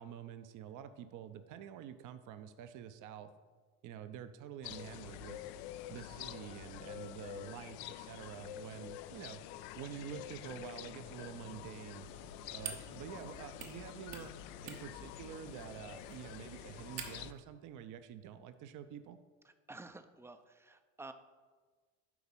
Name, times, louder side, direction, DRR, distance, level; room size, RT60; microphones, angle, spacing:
voice 1, 0.0-3.3 3.8-5.4 5.9-9.4 9.7-12.1 12.5-19.2, right 9 dB, 45° right, 10 dB, 0.7 m, -48 dB
sound 1, 4.6-17.3, left 13 dB, 60° left, 0.5 m, -48 dB
sound 2, 12.0-17.4, right 8 dB, 65° right, 1.2 m, -50 dB
voice 2, 19.4-21.1, right 2 dB, 5° right, 9 dB, 0.5 m, -51 dB
9.5 x 4.0 x 5.4 m, 1.4 s
hypercardioid pair, 65°, 43 cm